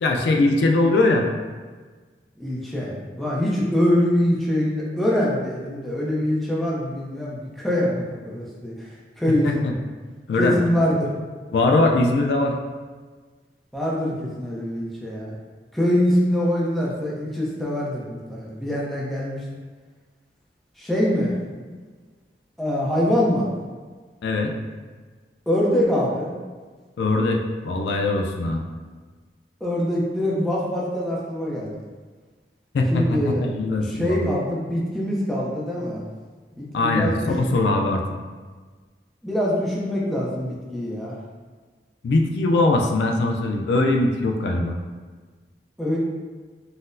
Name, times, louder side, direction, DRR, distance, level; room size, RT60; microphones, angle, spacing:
voice 1, 0.0-1.3 9.4-9.7 10.3-10.6 11.5-12.6 24.2-24.5 27.0-28.6 32.7-34.3 36.7-38.0 42.0-44.8, left 2 dB, 75° left, 3 dB, 0.3 m, -21 dB
voice 2, 2.4-8.9 9.2-9.5 10.4-11.1 13.7-15.3 15.7-19.4 20.8-21.3 22.6-23.5 25.5-26.3 29.6-31.7 32.9-33.4 33.8-36.0 36.5-37.3 39.2-41.1 45.8-46.0, equal, ahead, -6 dB, 0.5 m, -24 dB
3.9 x 2.0 x 2.5 m, 1.4 s
head